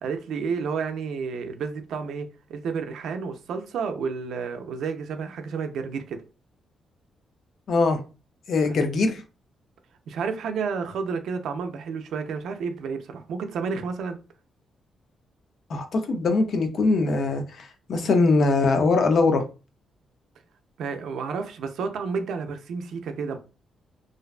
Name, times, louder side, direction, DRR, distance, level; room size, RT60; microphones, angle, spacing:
voice 1, 0.0-6.2 8.6-8.9 10.1-14.2 18.0-18.1 20.8-23.4, right 5 dB, 75° right, 0.4 m, -31 dB
voice 2, 7.7-8.0 8.5-9.2 15.7-19.4, left 3 dB, 55° left, 0.4 m, -22 dB
2.5 x 2.2 x 2.3 m
cardioid pair, 160°, 0 cm